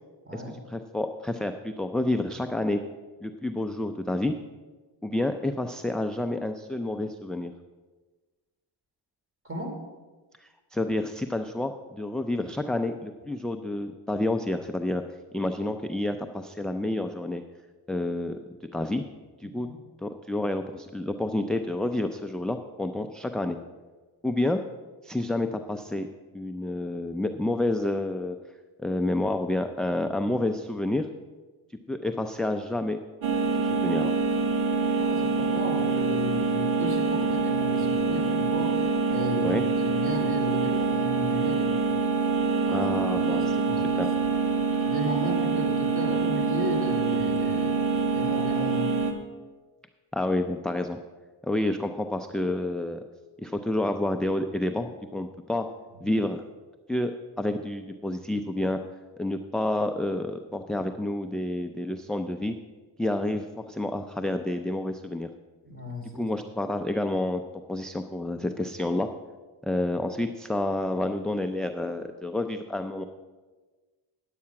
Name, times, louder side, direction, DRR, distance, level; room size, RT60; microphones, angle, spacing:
voice 1, 0.3-2.8 3.2-4.3 5.0-7.5 10.4-15.0 15.3-17.4 17.9-18.4 18.7-19.0 19.4-19.7 20.0-23.6 24.2-24.6 25.0-26.1 26.3-28.4 28.8-31.1 31.9-33.0 33.6-34.1 39.4-39.6 42.7-43.6 44.0-44.1 50.1-51.0 51.4-53.0 53.4-55.7 56.0-56.4 56.9-58.8 59.2-62.6 63.0-65.3 66.0-67.4 67.7-69.1 69.6-73.0, left 1 dB, ahead, 6 dB, 0.4 m, -29 dB
voice 2, 9.4-9.8 19.4-19.7 35.0-41.7 42.7-42.8 43.3-44.0 44.8-47.8 48.1-48.9 65.6-66.2, equal, 30° right, 2 dB, 2.9 m, -35 dB
sound 1, 33.2-49.1, right 4 dB, 70° right, 1.6 m, -25 dB
9.8 x 8.4 x 5.8 m, 1.3 s
cardioid pair, 90°, 46 cm